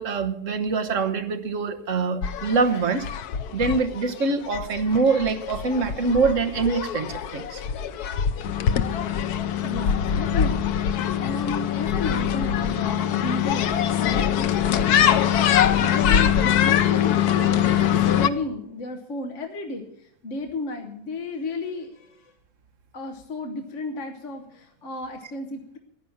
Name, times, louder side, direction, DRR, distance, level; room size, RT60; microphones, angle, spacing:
voice 1, 0.0-3.1 3.5-7.6, right 4 dB, 60° right, 6 dB, 1.4 m, -24 dB
sound 1, 2.2-18.3, left 9 dB, 85° left, 1.3 m, -23 dB
voice 2, 9.6-22.3 22.9-25.8, left 3 dB, 55° left, 4 dB, 1.4 m, -33 dB
15.0 x 10.0 x 7.1 m, 0.74 s
omnidirectional pair, 1.6 m